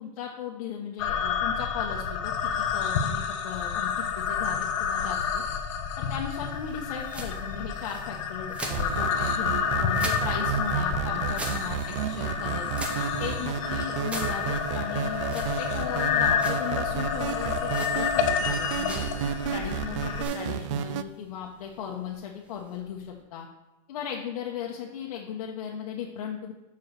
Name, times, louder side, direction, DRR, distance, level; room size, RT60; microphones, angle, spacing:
voice 1, 0.0-5.4 6.0-12.7 13.2-19.0 19.5-23.5 23.9-26.5, left 8 dB, 75° left, -1 dB, 1.0 m, -37 dB
sound 1, 1.0-20.2, left 7 dB, 55° left, 0.9 m, -29 dB
sound 2, 5.9-23.2, right 1 dB, 5° right, 0.6 m, -44 dB
sound 3, 8.7-21.0, right 8 dB, 50° right, 0.4 m, -32 dB
6.8 x 4.7 x 6.5 m, 1.1 s
supercardioid pair, 175°, 20 cm